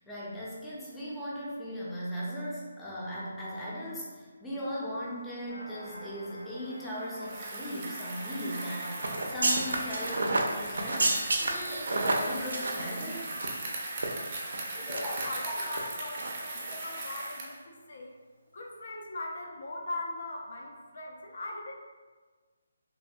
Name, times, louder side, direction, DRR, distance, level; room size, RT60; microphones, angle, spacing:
voice 1, 0.0-13.3 14.7-15.2 15.4-15.5, equal, 5° left, -7 dB, 0.5 m, -38 dB
sound 1, 5.5-17.1, equal, 85° left, 0.9 m, -49 dB
Bicycle, 7.1-17.6, right 2 dB, 35° right, 0.7 m, -39 dB
sound 2, 9.0-13.7 14.0-14.1 14.5-15.3 15.7-15.8 16.2-16.4 16.6-16.8, right 2 dB, 80° right, 0.4 m, -30 dB
voice 2, 14.8-18.1 18.5-21.8, left 2 dB, 60° left, 0 dB, 0.4 m, -40 dB
3.1 x 2.1 x 2.6 m, 1.4 s
figure-of-eight pair, 155°, 0 cm